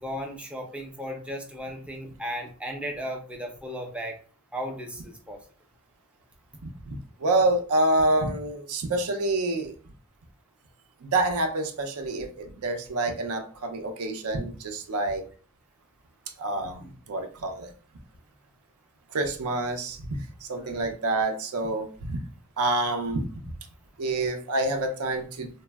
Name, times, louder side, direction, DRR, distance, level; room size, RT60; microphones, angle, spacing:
voice 1, 0.0-4.2 4.5-5.4 16.8-16.9 20.6-20.8, equal, 5° right, 2 dB, 0.4 m, -35 dB
voice 2, 6.6-9.7 11.0-15.2 16.4-17.7 19.1-22.2 22.6-23.3 24.0-25.5, right 2 dB, 80° right, 6 dB, 0.5 m, -27 dB
3.3 x 2.0 x 2.2 m, 0.41 s
head